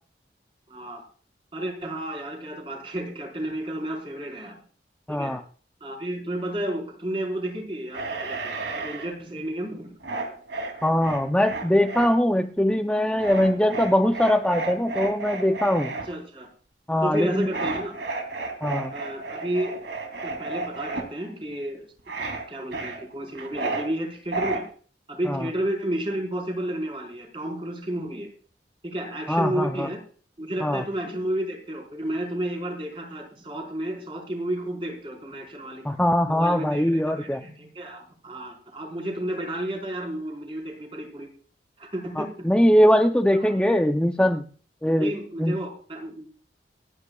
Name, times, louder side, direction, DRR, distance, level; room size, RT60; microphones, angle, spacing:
voice 1, 0.7-1.0 1.5-4.6 5.1-5.3 5.8-10.0 16.0-16.5 17.0-17.9 18.9-19.8 20.2-21.8 22.2-24.6 25.1-28.3 28.8-30.0 30.4-35.9 36.3-41.3 41.8-42.3 43.3-43.5 45.0-46.3, right 1 dB, 30° right, 0 dB, 4.5 m, -32 dB
voice 2, 5.1-5.4 10.8-15.9 16.9-17.5 18.6-18.9 25.3-25.4 29.3-29.9 30.6-30.8 35.8-37.4 42.2-44.4 44.8-45.1 45.4-45.6, equal, 5° left, 5 dB, 0.5 m, -21 dB
sound 1, 7.9-9.1 10.0-12.1 13.2-16.1 17.5-21.0 22.1-22.4 22.7-23.9 24.3-24.6, right 3 dB, 90° right, 2.8 m, -32 dB
26.5 x 9.8 x 2.3 m, 0.43 s
head